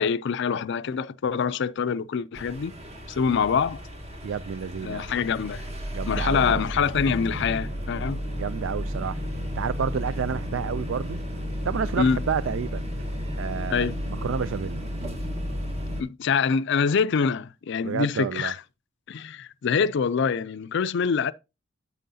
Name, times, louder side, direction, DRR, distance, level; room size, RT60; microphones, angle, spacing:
voice 1, 0.0-2.7 3.1-3.8 4.8-5.6 6.1-8.2 12.0-12.2 13.7-14.0 16.0-18.6 19.1-21.3, left 6 dB, 65° left, 0.4 m, -25 dB
sound 1, 2.3-16.0, equal, 35° right, 1.5 m, -32 dB
voice 2, 4.2-5.1 5.9-6.6 8.4-9.2 9.6-11.2 11.6-12.9 13.4-14.8 17.8-18.5, right 6 dB, 70° right, 0.4 m, -30 dB
9.2 x 7.6 x 2.7 m
head